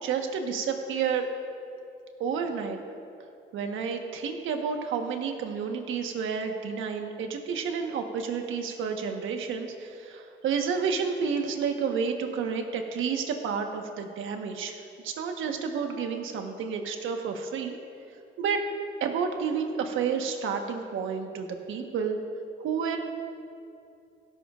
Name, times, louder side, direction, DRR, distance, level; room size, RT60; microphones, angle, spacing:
voice 1, 0.0-1.3 2.2-2.8 3.5-17.8 18.4-18.6 19.0-22.2 22.6-23.0, right 6 dB, 80° right, 4 dB, 1.3 m, -30 dB
16.0 x 14.0 x 2.5 m, 2.6 s
cardioid pair, 90°, 20 cm